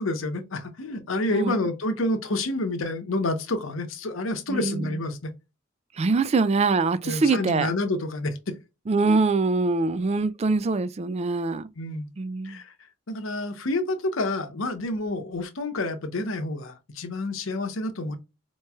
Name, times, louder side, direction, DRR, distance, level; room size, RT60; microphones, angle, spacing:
voice 1, 0.0-5.3 7.0-8.5 11.8-12.1 12.4-12.7 13.1-18.2, left 2 dB, 85° left, 0.8 m, -28 dB
voice 2, 1.3-1.7 4.5-4.9 6.0-7.7 8.9-11.7 12.2-12.6, right 3 dB, 30° right, 0.3 m, -24 dB
4.4 x 3.0 x 2.2 m
head